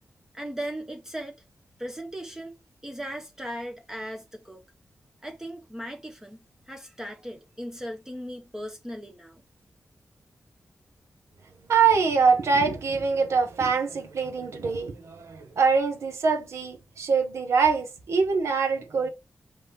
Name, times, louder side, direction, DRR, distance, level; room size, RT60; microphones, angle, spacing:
voice 1, 0.3-1.4 1.8-2.6 2.8-4.6 5.2-6.4 6.7-9.4, equal, 10° right, 0.8 m, -37 dB
voice 2, 11.7-19.1, right 5 dB, 85° right, 1.1 m, -24 dB
3.6 x 3.2 x 4.2 m
cardioid pair, 75°, 5 cm